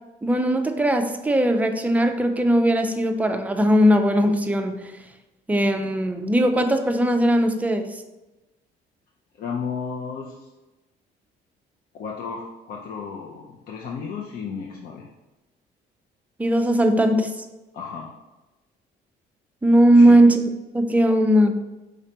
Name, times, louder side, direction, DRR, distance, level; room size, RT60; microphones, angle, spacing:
voice 1, 0.2-4.8 5.5-7.9 16.4-17.3 19.6-20.4 20.7-21.5, right 1 dB, 10° right, 5 dB, 0.4 m, -18 dB
voice 2, 9.3-10.5 11.9-15.1 17.7-18.2 19.9-20.2, left 5 dB, 60° left, -1 dB, 0.6 m, -33 dB
5.0 x 3.2 x 2.8 m, 1.0 s
cardioid pair, 110°, 17 cm